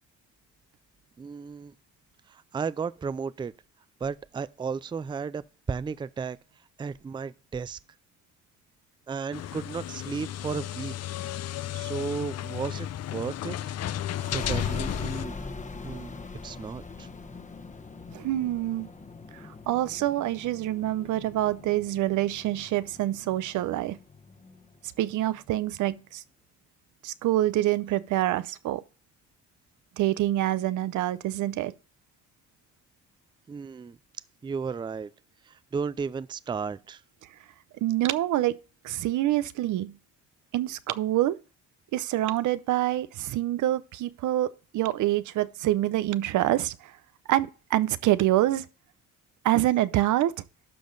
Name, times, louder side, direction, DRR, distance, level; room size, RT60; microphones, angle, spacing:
voice 1, 1.2-1.7 2.3-3.5 4.0-6.4 6.8-7.8 9.1-10.9 11.7-13.6 14.3-15.4 15.8-16.1 16.4-17.1 33.5-34.0 34.4-35.1 35.4-37.0, right 5 dB, 15° right, 0.4 m, -34 dB
sound 1, 9.3-15.3, left 12 dB, 55° left, 0.5 m, -33 dB
sound 2, 14.0-25.3, left 3 dB, 25° left, 1.1 m, -41 dB
voice 2, 18.1-18.9 19.3-24.0 25.0-26.2 27.0-28.8 30.0-31.7 37.8-38.6 38.8-40.0 40.5-41.4 41.9-46.9 47.3-48.7 49.4-50.3, right 14 dB, 80° right, 0.7 m, -26 dB
12.0 x 5.1 x 3.9 m
cardioid pair, 90°, 30 cm